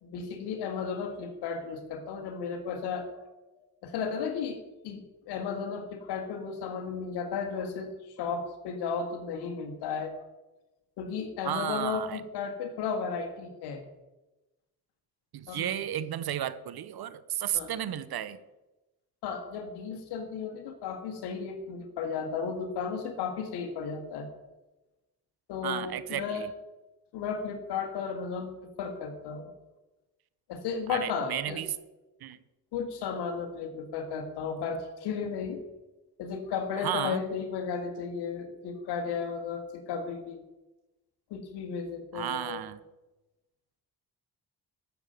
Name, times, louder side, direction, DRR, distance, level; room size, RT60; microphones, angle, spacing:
voice 1, 0.0-3.1 3.8-4.6 4.8-7.9 8.2-10.1 11.0-13.8 15.5-15.7 17.5-17.7 19.2-24.3 25.5-26.5 27.1-28.5 28.8-29.5 30.5-31.6 32.7-35.6 36.2-40.4 41.3-42.6, left 6 dB, 90° left, 7 dB, 1.9 m, -34 dB
voice 2, 11.4-12.2 15.3-18.4 25.6-26.5 30.9-31.7 32.2-32.4 36.7-37.2 42.1-42.8, right 11 dB, 65° right, 15 dB, 1.0 m, -33 dB
12.5 x 7.0 x 9.2 m, 1.1 s
supercardioid pair, 50°, 39 cm